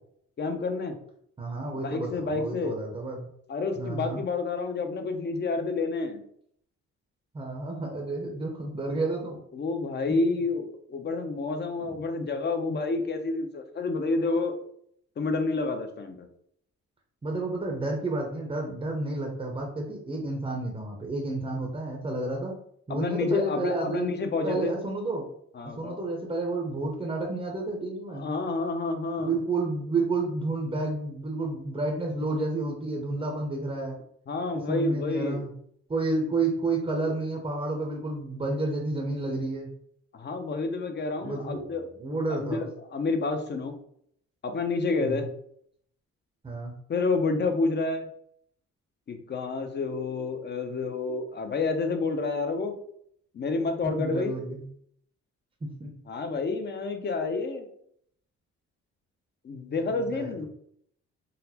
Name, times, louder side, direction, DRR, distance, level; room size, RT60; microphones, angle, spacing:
voice 1, 0.4-1.0 1.8-2.8 3.5-6.2 9.5-14.5 15.2-16.3 22.9-24.7 25.6-26.0 28.1-29.3 34.3-35.4 40.1-41.9 42.4-42.6 42.9-43.7 44.4-45.3 46.9-48.1 49.1-52.7 53.3-54.4 56.1-57.6 59.4-60.5, left 3 dB, 35° left, 6 dB, 0.5 m, -29 dB
voice 2, 1.4-3.3 3.8-4.2 7.3-9.4 10.1-10.2 11.9-12.0 17.2-22.6 22.9-24.1 24.4-25.3 25.6-28.3 29.2-33.9 34.5-35.5 35.9-39.7 41.2-42.7 45.0-45.3 46.4-46.8 53.8-54.6 55.6-55.9 59.9-60.3, right 2 dB, 20° right, 1 dB, 0.6 m, -31 dB
3.9 x 2.0 x 2.8 m, 0.68 s
cardioid pair, 90°, 30 cm